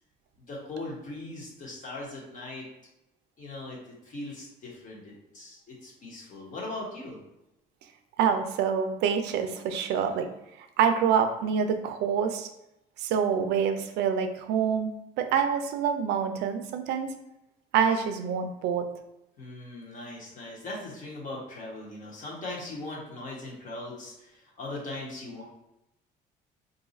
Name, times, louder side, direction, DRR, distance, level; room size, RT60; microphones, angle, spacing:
voice 1, 0.4-2.6 3.4-7.2 19.4-25.4, left 2 dB, 50° left, -3 dB, 1.2 m, -39 dB
voice 2, 8.2-10.3 10.8-12.5 13.0-17.1 17.7-18.9, right 7 dB, 85° right, 7 dB, 0.4 m, -26 dB
2.6 x 2.4 x 4.0 m, 0.87 s
cardioid pair, 110°, 17 cm